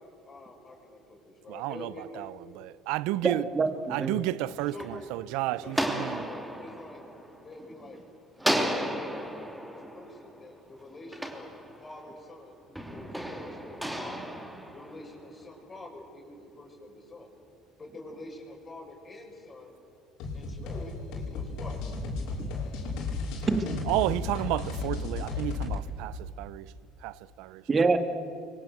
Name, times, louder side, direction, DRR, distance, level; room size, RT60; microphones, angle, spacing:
voice 1, 0.3-2.2 4.7-5.1 5.6-7.0 7.4-8.0 9.4-11.5 11.8-14.3 14.7-17.3 17.7-19.7 20.3-21.8, left 2 dB, 25° left, 6.8 m, -46 dB
voice 2, 1.5-3.5 3.9-6.3 23.9-26.7 27.0-27.6, right 17 dB, 80° right, 0.8 m, -32 dB
voice 3, 3.2-4.2 22.4-22.5 23.5-23.8 27.7-28.0, right 4 dB, 25° right, 2.3 m, -26 dB
sound 1, 4.2-7.9 8.4-12.2 12.8-15.4, equal, 5° right, 2.9 m, -34 dB
sound 2, 20.2-25.8, left 4 dB, 75° left, 6.7 m, -34 dB
30.0 x 24.5 x 8.2 m
cardioid pair, 120°, 0 cm